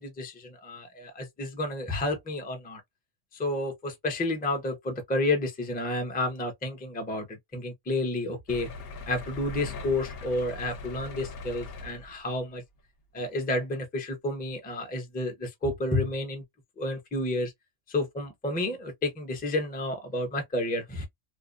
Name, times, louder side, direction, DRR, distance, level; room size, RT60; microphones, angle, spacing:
voice 1, 0.0-2.8 3.3-8.7 9.1-12.6 13.1-16.4 16.8-17.5 17.9-21.1, left 2 dB, 15° left, 0.3 m, -30 dB
sound 1, 8.5-12.4 13.2-13.3 13.7-13.8, left 3 dB, 60° left, 0.7 m, -40 dB
2.6 x 2.1 x 2.4 m
omnidirectional pair, 1.3 m